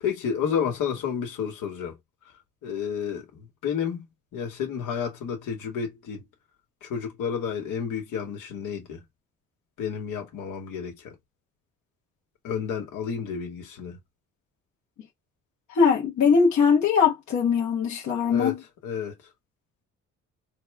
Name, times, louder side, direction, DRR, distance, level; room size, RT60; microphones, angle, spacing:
voice 1, 0.0-2.0 2.6-4.1 4.3-6.2 6.8-9.0 9.8-11.1 12.4-14.0 18.3-19.1, left 7 dB, 90° left, 1.6 m, -31 dB
voice 2, 15.7-18.6, left 6 dB, 70° left, 1.2 m, -21 dB
4.1 x 2.2 x 3.3 m
cardioid pair, 90°, 30 cm